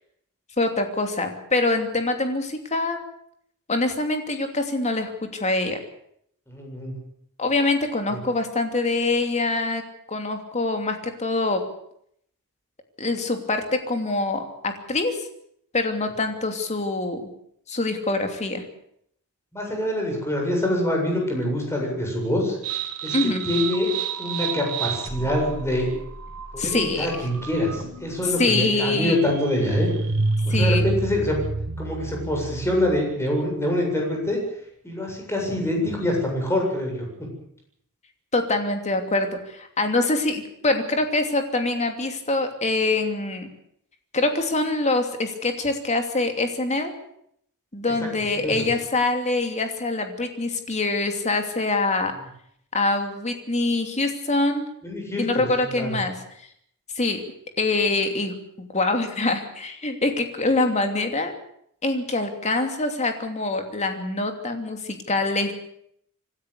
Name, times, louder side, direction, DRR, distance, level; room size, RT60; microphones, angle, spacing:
voice 1, 0.6-3.0 3.7-5.8 7.4-9.8 10.1-11.6 13.0-15.1 15.7-17.2 17.7-18.6 23.1-23.4 26.6-27.1 28.4-29.3 30.5-30.8 38.3-43.5 44.1-46.9 47.7-52.1 52.7-54.7 55.2-56.1 57.0-57.2 57.6-61.3 61.8-65.5, left 2 dB, 30° left, 5 dB, 2.8 m, -24 dB
voice 2, 6.5-6.9 19.5-22.6 23.0-23.9 24.2-25.9 26.5-29.9 30.5-31.4 31.8-34.4 34.8-37.1 47.8-47.9 48.3-48.7 54.8-55.5 55.7-56.0, left 1 dB, 10° left, 0 dB, 7.7 m, -25 dB
sound 1, 22.6-33.2, right 3 dB, 90° right, 2.1 m, -29 dB
26.0 x 13.0 x 8.4 m, 0.71 s
head